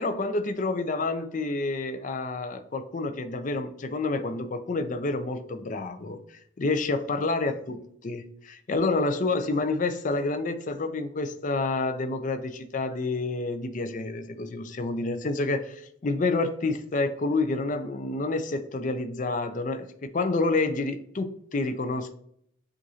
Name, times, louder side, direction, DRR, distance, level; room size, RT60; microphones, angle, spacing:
voice 1, 0.0-7.8 8.0-22.1, left 3 dB, 35° left, 8 dB, 0.4 m, -29 dB
7.5 x 2.5 x 2.8 m, 0.68 s
head